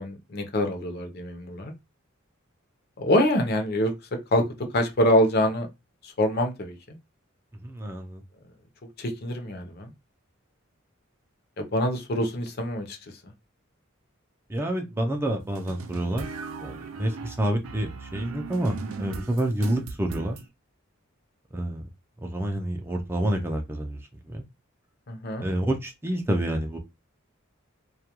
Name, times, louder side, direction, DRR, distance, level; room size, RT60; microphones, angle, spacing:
voice 1, 0.0-1.7 3.0-3.9 4.3-4.4 4.7-5.7 6.0-7.0 9.0-9.9 11.6-13.0 13.2-13.3 25.1-25.5, left 1 dB, 50° left, 0.6 m, -25 dB
voice 2, 7.6-8.2 14.5-16.3 16.6-20.4 21.5-21.8 22.2-24.0 24.3-24.4 25.4-26.8, right 1 dB, 10° right, 0.4 m, -28 dB
sound 1, 15.6-20.4, right 5 dB, 90° right, 0.4 m, -38 dB
2.3 x 2.2 x 2.9 m
head